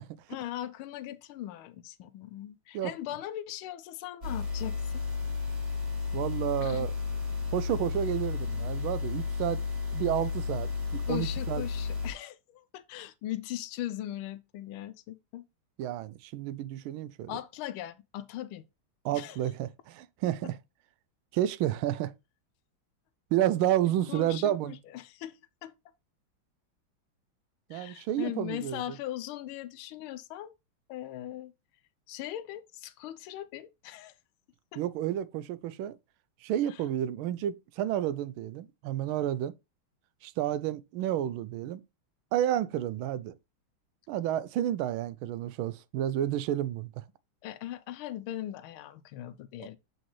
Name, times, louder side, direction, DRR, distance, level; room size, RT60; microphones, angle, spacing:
voice 1, 0.3-5.0 6.6-6.8 11.1-15.4 17.3-18.6 19.1-19.4 24.1-25.7 27.7-30.5 30.9-31.5 32.1-34.1 34.7-34.8 36.7-36.8 47.4-49.8, left 13 dB, 85° left, 1.5 m, -39 dB
sound 1, 4.2-12.1, left 5 dB, 30° right, 1.8 m, -33 dB
voice 2, 6.1-6.9 7.5-9.6 9.9-11.6 15.8-17.4 19.0-20.6 21.3-22.1 23.3-24.7 27.7-28.8 34.8-36.0 36.4-39.5 40.2-41.8 42.3-43.3 44.1-47.0 49.6-49.7, right 12 dB, 80° right, 1.4 m, -30 dB
7.9 x 4.0 x 3.1 m
omnidirectional pair, 2.3 m